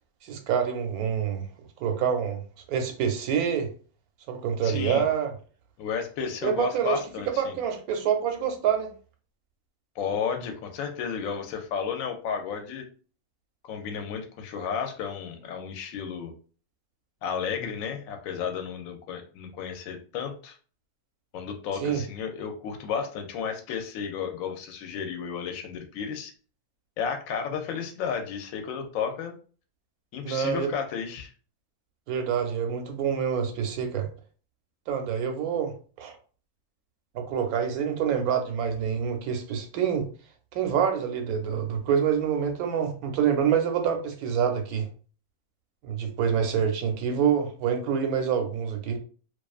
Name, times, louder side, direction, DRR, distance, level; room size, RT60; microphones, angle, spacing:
voice 1, 0.2-1.5 1.8-2.4 2.7-3.7 4.3-5.3 6.4-7.0 7.4-8.9 21.8-22.0 30.2-30.7 32.1-34.1 34.9-36.1 37.1-40.1 40.5-44.9 45.8-49.0, right 8 dB, 90° right, 1.1 m, -26 dB
voice 2, 4.6-5.1 5.8-7.5 10.0-12.8 13.6-16.3 17.2-20.6 21.3-26.3 27.0-29.4 30.1-31.3, left 6 dB, 75° left, 1.0 m, -32 dB
2.4 x 2.3 x 2.4 m
omnidirectional pair, 1.5 m